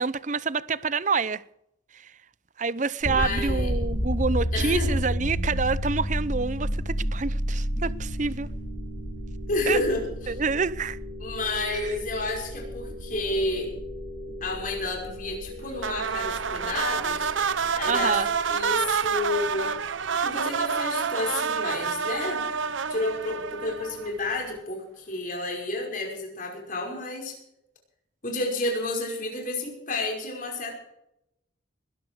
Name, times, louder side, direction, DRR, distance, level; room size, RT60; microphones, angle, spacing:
voice 1, 0.0-1.4 1.9-2.1 2.6-8.5 9.7-9.8 10.3-11.0 11.7-11.9 17.9-18.3, right 4 dB, 40° right, 0.6 m, -27 dB
sound 1, 3.0-19.9, equal, 70° left, 7.5 m, -32 dB
voice 2, 3.1-3.7 4.5-5.0 9.5-10.3 11.2-13.7 14.4-17.3 17.7-19.7 20.2-22.5 22.9-27.4 28.2-30.7, left 2 dB, 40° left, 5.5 m, -30 dB
sound 2, 15.8-24.3, right 6 dB, 75° right, 0.7 m, -28 dB
21.0 x 12.5 x 4.8 m
head